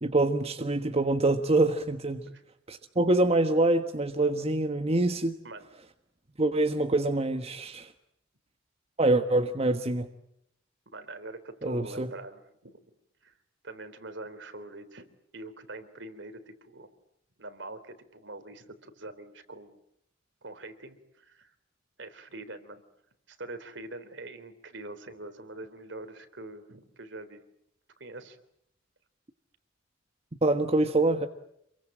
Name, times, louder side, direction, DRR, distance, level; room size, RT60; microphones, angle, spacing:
voice 1, 0.0-2.2 2.7-5.3 6.4-7.9 9.0-10.1 11.6-12.1 30.4-31.3, right 2 dB, 35° right, 6 dB, 1.4 m, -25 dB
voice 2, 10.9-12.7 13.2-13.4 13.6-16.9 17.4-19.8 20.4-21.5 22.0-22.8 23.3-27.4 28.0-28.4, right 2 dB, 70° right, 10 dB, 3.6 m, -44 dB
28.0 x 23.0 x 9.0 m, 0.76 s
head